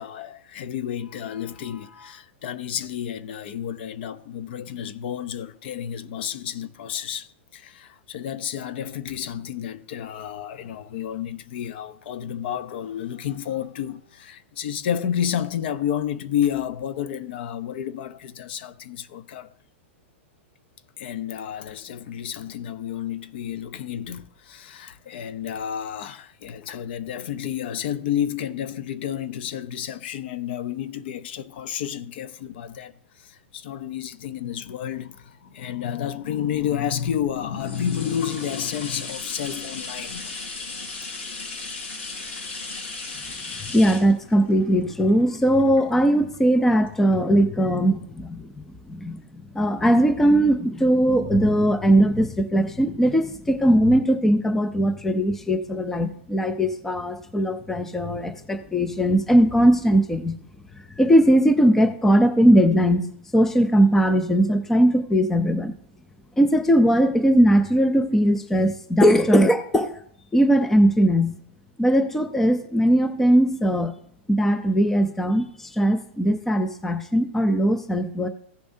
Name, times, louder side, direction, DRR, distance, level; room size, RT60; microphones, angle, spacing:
voice 1, 0.0-19.5 21.0-40.3, left 9 dB, 55° left, 0.7 m, -31 dB
sound 1, 37.0-46.3 46.9-47.0, left 3 dB, 80° left, 4.7 m, -36 dB
voice 2, 43.7-48.5 48.9-60.4 61.0-63.1 63.3-65.7 66.4-70.0 70.3-71.4 71.8-73.9 74.3-78.3, equal, 5° left, 0.5 m, -19 dB
16.0 x 6.9 x 2.7 m
supercardioid pair, 155°, 7 cm